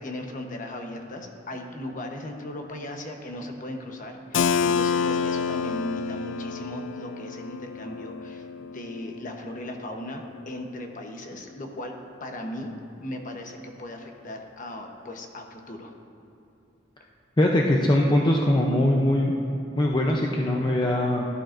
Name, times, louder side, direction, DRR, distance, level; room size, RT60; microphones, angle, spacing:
voice 1, 0.0-11.9 12.2-12.7 13.0-15.9, left 1 dB, 45° left, 3 dB, 1.1 m, -37 dB
Keyboard (musical), 4.3-9.9, left 6 dB, 80° left, 0.3 m, -29 dB
voice 2, 17.4-19.3 19.8-21.3, left 1 dB, 25° left, -1 dB, 0.6 m, -21 dB
17.0 x 11.5 x 2.6 m, 2.6 s
head